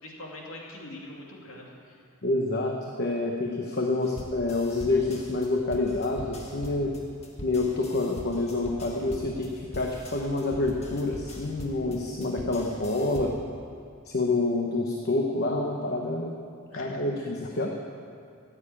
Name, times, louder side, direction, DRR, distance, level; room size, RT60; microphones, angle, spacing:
voice 1, 0.0-2.0 16.7-17.3, left 1 dB, 70° left, -2 dB, 2.4 m, -43 dB
voice 2, 2.2-6.9 7.4-13.3 14.0-16.3 16.8-17.7, left 2 dB, 50° left, 1 dB, 1.1 m, -27 dB
sound 1, 4.0-13.5, left 1 dB, 30° left, 1.4 m, -42 dB
14.5 x 7.5 x 8.8 m, 2.4 s
head